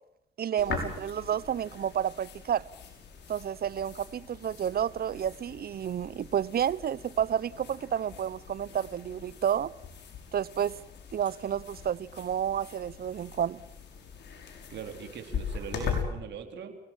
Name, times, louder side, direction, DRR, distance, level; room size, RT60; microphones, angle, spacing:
voice 1, 0.4-2.7 3.3-9.7 10.3-10.8 11.1-13.6, right 9 dB, 55° right, 0.9 m, -30 dB
sound 1, 0.6-16.0, left 6 dB, 70° left, 6.6 m, -41 dB
voice 2, 14.7-16.7, right 7 dB, 70° right, 4.0 m, -40 dB
29.0 x 19.0 x 7.5 m
supercardioid pair, 60°, 19 cm